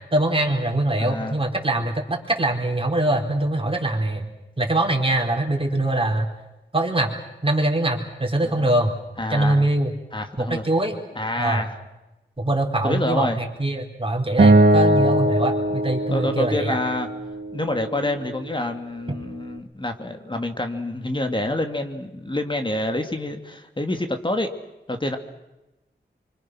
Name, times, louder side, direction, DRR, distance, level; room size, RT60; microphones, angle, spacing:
voice 1, 0.1-4.3 4.6-6.3 6.7-7.1 7.4-8.9 9.3-9.9 10.4-11.0 11.4-11.6 12.4-16.8, right 1 dB, 30° right, 1 dB, 4.3 m, -23 dB
voice 2, 1.0-1.4 8.6-8.7 9.2-9.7 10.1-10.6 11.2-11.8 12.8-13.4 15.7-15.8 16.1-17.1 17.5-24.5 24.9-25.2, left 1 dB, 25° left, 6 dB, 2.5 m, -27 dB
Acoustic guitar, 14.4-17.6, right 1 dB, 60° right, 2.5 m, -19 dB
25.0 x 25.0 x 6.3 m, 1.0 s
cardioid pair, 45°, 19 cm